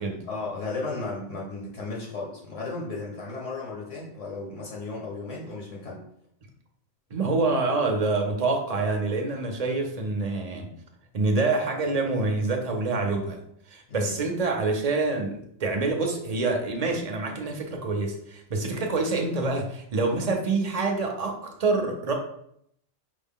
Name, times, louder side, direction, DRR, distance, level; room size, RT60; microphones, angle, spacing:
voice 1, 0.3-6.0 13.9-14.1, left 3 dB, 80° left, -3 dB, 1.3 m, -34 dB
voice 2, 7.1-10.7 11.1-13.4 13.7-22.1, right 3 dB, 40° right, 2 dB, 0.6 m, -26 dB
5.2 x 2.1 x 3.6 m, 0.71 s
omnidirectional pair, 1.2 m